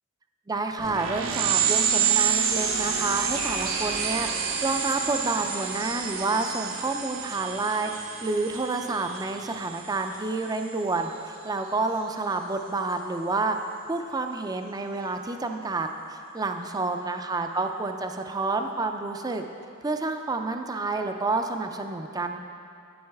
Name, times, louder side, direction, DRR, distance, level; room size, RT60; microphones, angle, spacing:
voice 1, 0.5-7.9 8.2-13.6 13.9-19.4 19.8-22.4, right 3 dB, 20° right, 5 dB, 0.4 m, -29 dB
sound 1, 0.8-10.9, right 7 dB, 75° right, 0.9 m, -28 dB
9.8 x 9.5 x 3.5 m, 2.4 s
head